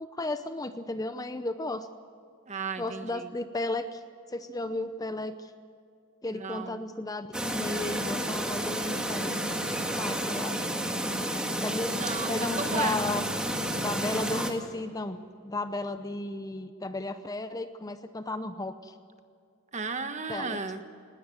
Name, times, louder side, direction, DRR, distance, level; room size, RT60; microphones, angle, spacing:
voice 1, 0.0-1.9 2.8-4.0 4.3-5.5 6.2-9.3 9.7-10.7 11.6-12.0 12.3-13.2 13.8-18.9 20.3-20.6, left 2 dB, 15° left, 10 dB, 0.7 m, -34 dB
voice 2, 2.5-3.3 6.3-6.8 11.9-13.0 19.7-20.8, right 5 dB, 35° right, 8 dB, 1.3 m, -34 dB
Chirp tweet, 7.3-14.5, right 1 dB, 5° right, 1.7 m, -31 dB
20.0 x 17.5 x 7.8 m, 2.4 s
head